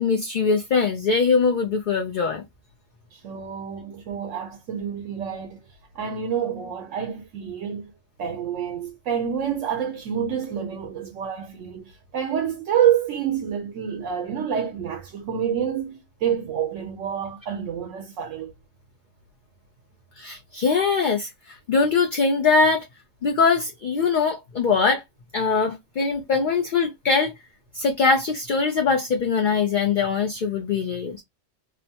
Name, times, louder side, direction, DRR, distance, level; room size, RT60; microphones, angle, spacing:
voice 1, 0.0-2.4 20.2-22.9 23.2-25.0 25.3-27.3 27.7-31.2, left 4 dB, 55° left, 0.5 m, -22 dB
voice 2, 3.1-5.6 5.9-7.9 8.2-18.5, right 8 dB, 80° right, 1.0 m, -27 dB
2.8 x 2.1 x 2.8 m
omnidirectional pair, 1.3 m